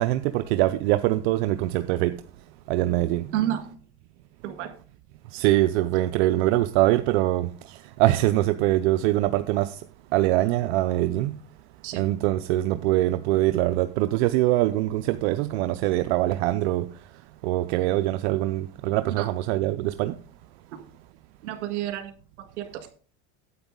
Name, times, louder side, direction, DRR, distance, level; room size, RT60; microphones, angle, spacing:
voice 1, 0.0-2.2 2.7-3.3 5.3-9.8 10.1-11.4 12.0-16.9 17.4-20.2, right 16 dB, 65° right, 0.6 m, -23 dB
voice 2, 21.4-22.1 22.6-22.7, right 12 dB, 80° right, 1.9 m, -29 dB
9.6 x 7.9 x 3.8 m
supercardioid pair, 120°, 34 cm